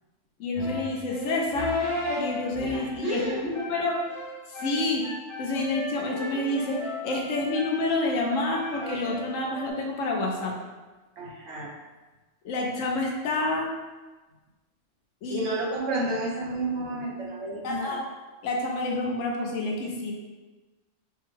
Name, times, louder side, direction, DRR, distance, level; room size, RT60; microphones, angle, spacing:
voice 1, 0.4-1.7 2.2-4.0 4.5-5.1 5.4-10.5 12.4-13.7 15.2-15.5 17.6-18.0 18.4-20.1, left 2 dB, 85° left, 0 dB, 1.1 m, -28 dB
sound 1, 0.5-9.7, left 2 dB, 40° left, 0.4 m, -34 dB
voice 2, 2.7-3.5 11.2-11.7 15.3-18.0, right 2 dB, 75° right, -5 dB, 1.2 m, -31 dB
5.1 x 2.1 x 3.1 m, 1.2 s
omnidirectional pair, 1.3 m